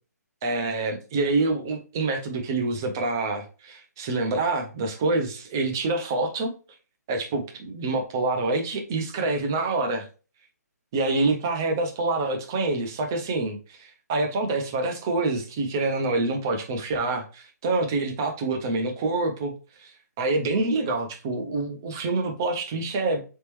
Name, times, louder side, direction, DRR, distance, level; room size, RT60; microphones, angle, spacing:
voice 1, 0.4-6.5 7.1-10.1 10.9-19.5 19.8-23.2, right 3 dB, 10° right, 4 dB, 0.4 m, -26 dB
4.0 x 3.5 x 2.9 m, 0.34 s
hypercardioid pair, 175°, 9 cm